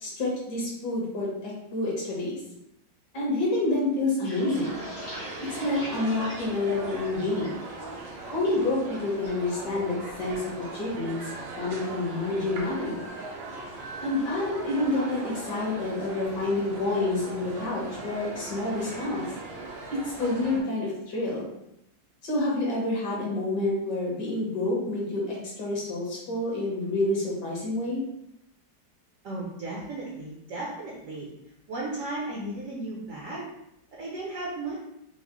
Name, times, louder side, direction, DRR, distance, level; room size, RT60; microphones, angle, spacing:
voice 1, 0.0-2.4 3.1-4.8 5.6-7.6 8.3-11.3 11.6-13.0 14.0-19.2 20.0-21.5 22.2-28.0, left 2 dB, 70° left, -4 dB, 1.7 m, -28 dB
sound 1, 4.0-7.7 8.0-8.5 8.9-9.3 9.6-10.8 11.2-11.4 11.8-12.2, left 1 dB, 50° left, 0.5 m, -42 dB
sound 2, 4.5-20.6, right 2 dB, 90° right, 1.4 m, -39 dB
voice 2, 29.2-31.3 31.7-33.5 34.0-34.8, right 2 dB, 65° right, -4 dB, 0.8 m, -35 dB
4.6 x 2.0 x 2.8 m, 0.81 s
omnidirectional pair, 2.0 m